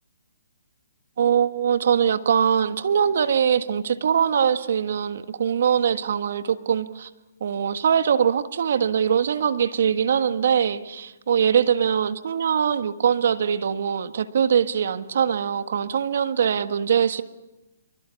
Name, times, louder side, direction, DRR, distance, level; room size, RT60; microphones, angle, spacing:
voice 1, 1.2-7.1 7.4-17.2, right 8 dB, 60° right, 11 dB, 1.5 m, -22 dB
25.5 x 23.5 x 7.1 m, 1.0 s
hypercardioid pair, 140°, 0 cm